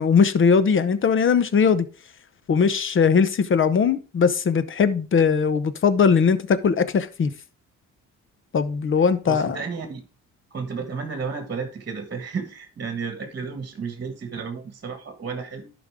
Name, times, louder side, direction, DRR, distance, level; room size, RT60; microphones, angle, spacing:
voice 1, 0.0-1.8 2.5-7.3 8.5-9.6, left 6 dB, 40° left, 0.8 m, -20 dB
voice 2, 9.2-10.0 10.5-15.7, right 5 dB, 35° right, 1.5 m, -32 dB
11.0 x 5.2 x 3.6 m
cardioid pair, 90°, 30 cm